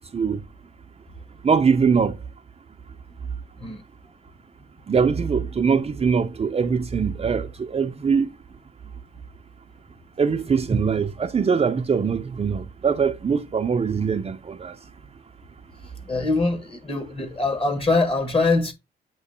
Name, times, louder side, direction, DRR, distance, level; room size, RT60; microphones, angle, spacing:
voice 1, 1.4-2.2 4.9-8.3 10.2-14.8, right 6 dB, 30° right, 0.6 m, -22 dB
voice 2, 16.1-18.7, left 3 dB, 30° left, 1.7 m, -23 dB
8.3 x 3.1 x 4.3 m
cardioid pair, 90°, 20 cm